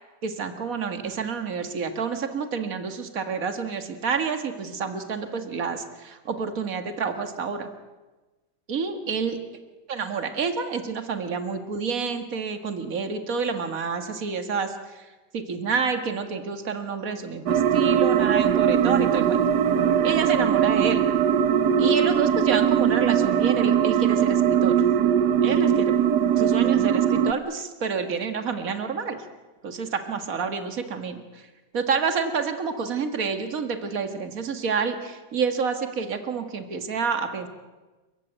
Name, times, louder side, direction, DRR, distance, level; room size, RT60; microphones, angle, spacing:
voice 1, 0.2-7.7 8.7-9.4 9.9-15.1 15.3-19.4 20.0-21.0 21.8-24.8 25.4-25.9 26.4-29.2 29.6-31.4 31.7-37.5, right 5 dB, 55° right, 7 dB, 2.2 m, -28 dB
sound 1, 17.5-27.3, right 8 dB, 75° right, 1.5 m, -21 dB
28.5 x 15.5 x 9.3 m, 1.2 s
omnidirectional pair, 1.8 m